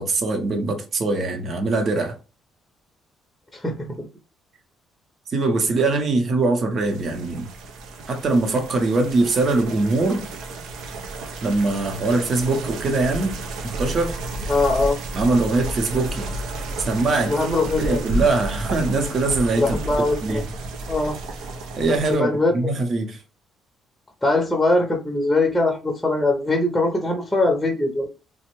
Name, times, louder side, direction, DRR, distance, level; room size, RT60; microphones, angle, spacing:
voice 1, 0.0-2.2 5.3-7.5 8.1-10.3 11.4-13.4 13.6-14.1 15.1-16.4 16.8-17.4 17.8-19.8 20.2-20.4 21.8-23.2, right 3 dB, 45° right, 0.7 m, -22 dB
voice 2, 3.5-4.1 14.5-15.0 17.3-18.0 19.6-20.4 20.9-21.2 22.2-22.5 24.2-28.1, left 2 dB, 5° left, 0.6 m, -21 dB
sound 1, 6.8-22.2, right 2 dB, 90° right, 0.5 m, -32 dB
3.3 x 2.0 x 3.0 m
cardioid pair, 125°, 0 cm